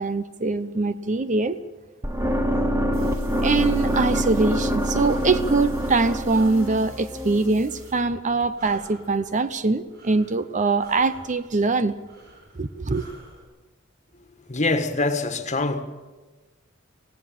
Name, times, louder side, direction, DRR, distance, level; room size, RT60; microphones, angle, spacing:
voice 1, 0.0-1.6 3.4-11.9 12.6-13.1, right 3 dB, 40° right, 0.7 m, -23 dB
sound 1, 2.0-8.1, equal, 15° right, 1.0 m, -25 dB
sound 2, 2.9-7.9, right 3 dB, 85° right, 6.0 m, -50 dB
Breathing, 5.4-13.4, right 1 dB, 55° right, 6.3 m, -51 dB
voice 2, 14.5-15.8, left 2 dB, 35° left, 1.7 m, -24 dB
18.5 x 16.5 x 8.8 m
head